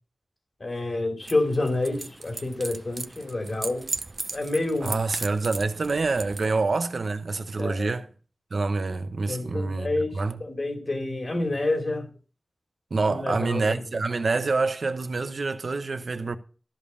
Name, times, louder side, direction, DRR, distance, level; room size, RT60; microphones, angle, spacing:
voice 1, 0.6-3.9 4.3-5.0 6.4-6.6 7.6-8.0 9.3-12.1 13.1-13.8, left 2 dB, 60° left, 3.0 m, -28 dB
sound 1, 1.2-6.5, right 2 dB, 50° right, 0.6 m, -37 dB
voice 2, 4.8-8.1 8.5-9.9 10.2-10.4 12.9-16.4, right 3 dB, 80° right, 1.0 m, -26 dB
13.0 x 5.4 x 6.9 m
wide cardioid pair, 75°, 0 cm